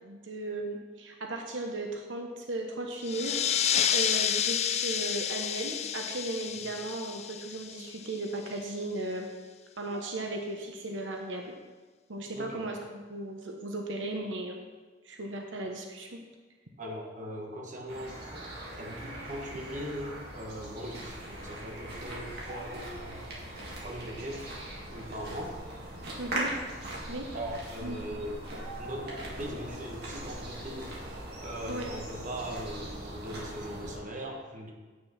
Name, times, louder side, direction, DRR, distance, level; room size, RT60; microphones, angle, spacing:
voice 1, 0.0-9.3 9.8-11.5 12.1-14.6 15.0-16.2 26.2-26.5 27.1-27.3 27.8-28.0 31.7-31.9, right 2 dB, 75° right, 2 dB, 1.1 m, -36 dB
sound 1, 3.0-8.2, left 9 dB, 35° left, 0.3 m, -30 dB
voice 2, 12.3-12.7 16.8-18.5 18.8-23.2 23.8-24.6 24.9-25.6 26.1-26.2 27.3-28.4 28.8-34.7, equal, 40° right, 0 dB, 1.3 m, -40 dB
sound 2, 17.9-34.0, right 1 dB, 60° right, 2.4 m, -40 dB
8.5 x 6.4 x 5.7 m, 1.4 s
head